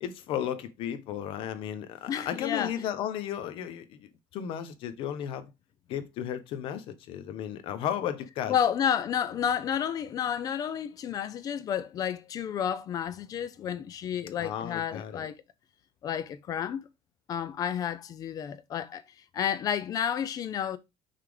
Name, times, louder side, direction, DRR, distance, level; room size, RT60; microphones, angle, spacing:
voice 1, 0.0-5.5 5.9-8.6 14.4-15.3, left 10 dB, 55° left, 0.9 m, -34 dB
voice 2, 2.1-2.7 8.5-15.4 16.0-16.9 17.3-19.0 19.3-20.8, left 8 dB, 35° left, 0.5 m, -31 dB
5.8 x 3.5 x 4.9 m
cardioid pair, 175°, 11 cm